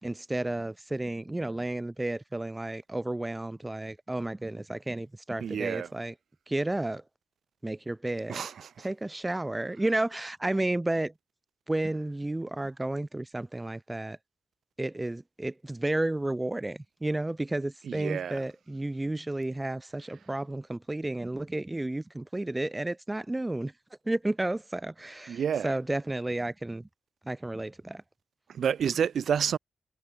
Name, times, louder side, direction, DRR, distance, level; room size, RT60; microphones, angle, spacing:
voice 1, 0.0-6.1 6.5-7.0 7.6-8.4 8.8-11.1 11.7-14.2 14.8-23.7 24.1-26.9 27.2-28.0, right 2 dB, 15° right, 3.8 m, -32 dB
voice 2, 5.4-5.9 8.3-8.9 17.8-18.4 25.3-25.7 28.5-29.6, right 8 dB, 75° right, 4.5 m, -29 dB
wide cardioid pair, 130°, 0 cm